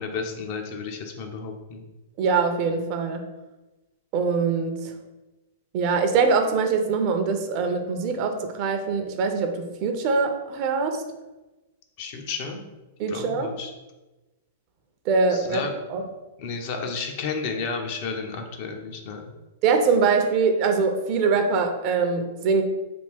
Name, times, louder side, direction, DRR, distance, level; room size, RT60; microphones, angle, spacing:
voice 1, 0.0-1.8 12.0-12.6 13.1-13.7 15.3-15.7 16.4-19.3, left 5 dB, 55° left, 4 dB, 0.6 m, -32 dB
voice 2, 2.2-3.3 4.1-4.9 5.7-11.0 13.0-13.5 15.1-15.6 15.9-16.0 19.6-22.6, right 4 dB, 45° right, 5 dB, 0.5 m, -23 dB
3.4 x 2.4 x 3.4 m, 1.1 s
hypercardioid pair, 110°, 0 cm